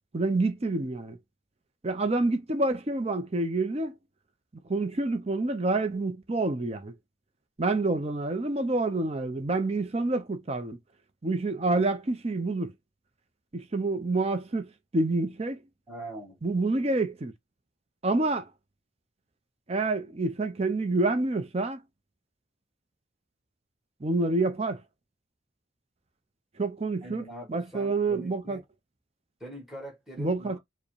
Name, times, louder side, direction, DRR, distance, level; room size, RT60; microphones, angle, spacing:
voice 1, 0.1-1.2 1.8-3.9 4.7-6.9 7.6-10.8 11.2-12.7 13.5-14.7 14.9-15.6 16.4-17.3 18.0-18.4 19.7-21.8 24.0-24.8 26.6-27.2 27.5-28.6 30.2-30.6, right 2 dB, 30° right, 0.6 m, -27 dB
voice 2, 15.9-16.4 27.0-28.6 29.4-30.6, right 1 dB, ahead, 1.5 m, -42 dB
4.7 x 2.2 x 3.1 m
head